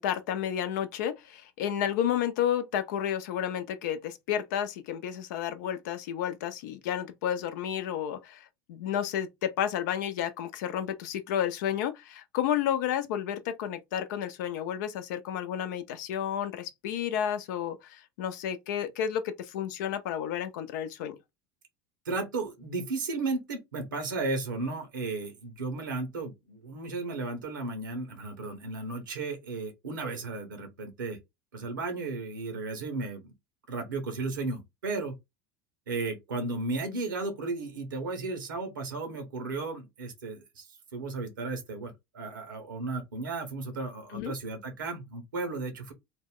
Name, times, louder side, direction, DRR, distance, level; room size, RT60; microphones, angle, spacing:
voice 1, 0.0-21.2 44.1-44.3, left 9 dB, 70° left, 0.6 m, -31 dB
voice 2, 22.0-31.2 31.5-33.3 33.7-35.1 35.9-45.9, right 3 dB, 90° right, 1.2 m, -34 dB
2.9 x 2.2 x 3.6 m
hypercardioid pair, 85°, 10 cm